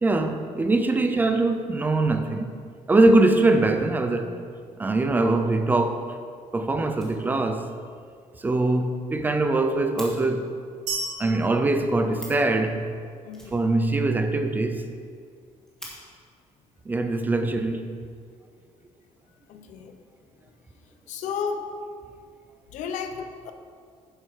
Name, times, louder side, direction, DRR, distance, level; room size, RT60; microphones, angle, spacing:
voice 1, 0.0-2.5 2.9-4.3 4.8-6.2 6.5-7.7 8.4-10.5 11.2-12.9 13.5-14.9 16.9-17.9, right 2 dB, 15° right, 7 dB, 0.5 m, -22 dB
Fire, 6.9-7.7 8.0-8.1 8.5-8.6 8.8-8.9 9.2-10.1 11.9-12.0 12.1-12.5 13.3-14.2 14.5-14.6 14.9-15.0 15.4-15.9 16.9-17.1 17.7-18.3, equal, 5° left, 1.7 m, -45 dB
sound 1, 10.9-12.8, right 3 dB, 85° right, 2.8 m, -35 dB
voice 2, 13.2-13.6 19.5-20.0 21.1-21.7 22.7-23.5, left 6 dB, 75° left, 7 dB, 0.9 m, -33 dB
10.0 x 7.7 x 4.9 m, 2.2 s
cardioid pair, 180°, 13 cm